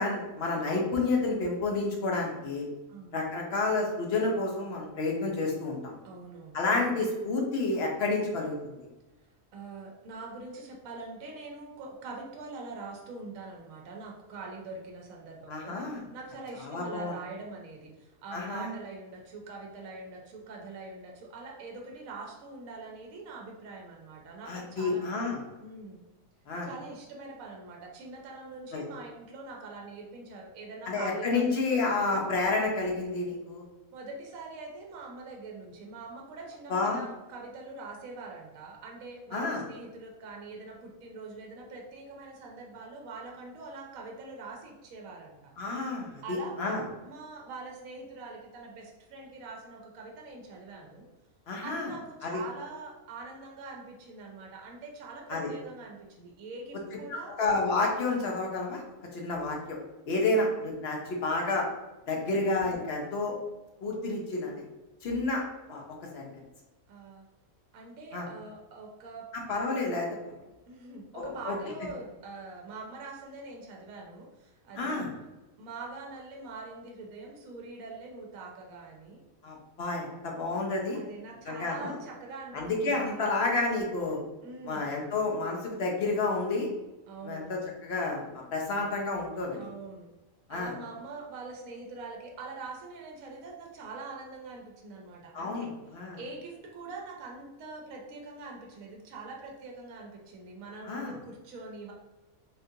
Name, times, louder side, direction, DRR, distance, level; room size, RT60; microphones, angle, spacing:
voice 1, 0.0-2.6 3.1-5.9 6.5-8.8 15.5-16.0 16.6-17.1 18.3-18.7 24.5-25.4 26.5-26.7 28.7-28.8 30.9-33.6 36.7-37.0 39.3-39.6 45.6-46.8 51.5-51.9 52.2-52.4 55.3-55.5 57.1-58.8 59.1-59.8 60.1-61.7 62.1-63.3 63.8-64.5 65.0-65.4 65.7-65.8 66.1-66.3 68.1-68.3 69.3-70.1 71.1-71.6 74.7-75.1 79.4-81.0 81.5-81.9 82.5-84.2 84.6-86.7 87.2-88.2 88.5-89.7 90.5-90.7 95.3-96.2 100.8-101.2, left 3 dB, 55° left, 0 dB, 0.8 m, -30 dB
voice 2, 6.0-7.0 9.5-25.0 25.6-26.0 26.6-31.5 33.9-45.5 46.2-51.0 51.6-57.3 62.1-62.4 66.9-67.3 67.7-69.3 70.7-75.1 75.6-79.2 80.9-83.3 84.4-85.1 87.1-87.8 89.5-90.1 90.5-95.7 96.2-101.9, right 3 dB, 75° right, 0 dB, 1.0 m, -44 dB
3.6 x 2.4 x 2.7 m, 1.1 s
omnidirectional pair, 1.5 m